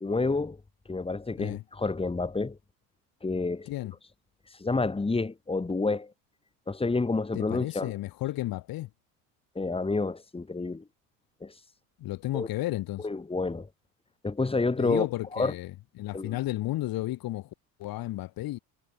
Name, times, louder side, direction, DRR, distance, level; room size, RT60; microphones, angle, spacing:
voice 1, 0.0-0.6 0.9-2.6 3.2-3.7 4.6-6.1 6.7-7.9 9.6-10.8 11.4-11.5 12.3-12.5 13.0-13.7 14.2-15.1 15.3-15.5 16.1-16.4, left 3 dB, 15° left, 2.4 m, -29 dB
voice 2, 7.3-8.9 12.0-13.1 14.8-18.6, left 16 dB, 55° left, 2.8 m, -33 dB
supercardioid pair, 95°, 41 cm